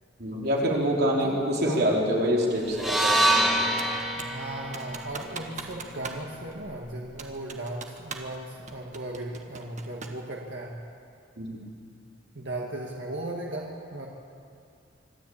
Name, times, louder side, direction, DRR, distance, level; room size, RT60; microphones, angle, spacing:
voice 1, 0.2-3.7 11.4-11.6, equal, 60° right, -2 dB, 3.8 m, -26 dB
voice 2, 1.2-1.9 4.1-10.8 12.3-14.1, right 1 dB, 75° right, -1 dB, 1.8 m, -36 dB
sound 1, 2.7-6.9, right 1 dB, ahead, 2.4 m, -27 dB
Computer keyboard, 3.8-4.4 4.7-6.3 6.5-6.6 7.2-8.4 8.7-10.2, right 5 dB, 40° right, 1.5 m, -40 dB
25.0 x 13.0 x 8.7 m, 2.4 s
head